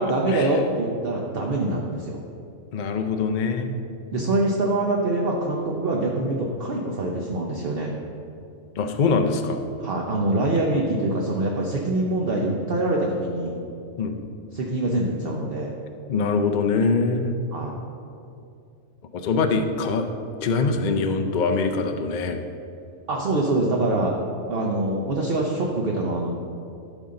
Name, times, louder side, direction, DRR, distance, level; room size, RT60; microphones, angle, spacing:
voice 1, 0.0-2.2 4.1-7.9 9.8-13.6 14.5-15.8 17.5-17.8 23.1-24.1 24.5-26.3, right 2 dB, 50° right, -1 dB, 0.9 m, -24 dB
voice 2, 2.7-3.8 8.8-9.6 14.0-14.2 16.1-17.3 19.1-20.1 20.4-22.4, left 4 dB, 55° left, 5 dB, 0.5 m, -23 dB
13.5 x 5.5 x 3.8 m, 2.5 s
omnidirectional pair, 1.4 m